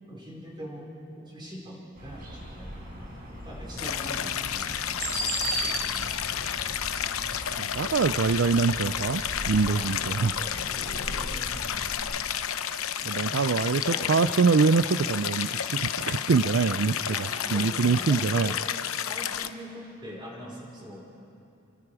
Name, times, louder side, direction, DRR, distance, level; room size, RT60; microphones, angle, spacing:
voice 1, 0.1-0.9 1.2-2.8 3.4-6.1 9.6-11.5 13.5-14.1 17.0-18.6 19.0-21.1, equal, 20° right, -3 dB, 4.9 m, -43 dB
sound 1, 2.0-12.0, right 1 dB, 45° right, 6.0 m, -37 dB
Stream, 3.8-19.5, left 9 dB, 85° left, 0.8 m, -31 dB
voice 2, 7.6-10.3 13.1-18.5, right 4 dB, 60° right, 12 dB, 0.4 m, -24 dB
30.0 x 23.5 x 4.9 m, 2.7 s
head